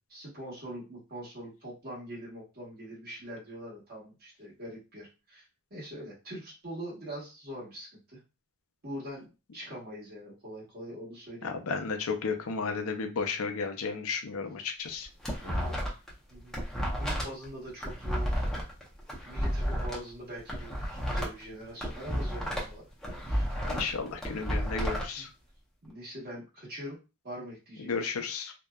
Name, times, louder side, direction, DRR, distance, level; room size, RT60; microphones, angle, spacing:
voice 1, 0.1-8.2 8.8-11.5 15.3-16.0 16.3-16.7 17.0-18.4 19.2-22.8 23.3-23.6 23.9-24.1 24.9-25.3 25.8-27.0 27.2-28.2, equal, 45° right, -5 dB, 1.2 m, -43 dB
voice 2, 11.4-15.1 23.6-25.3 27.8-28.5, left 5 dB, 70° left, 6 dB, 0.5 m, -33 dB
sound 1, 14.8-16.1 16.4-20.0 20.4-22.7 23.0-25.0, equal, ahead, 0.6 m, -32 dB
2.6 x 2.1 x 2.2 m, 0.29 s
head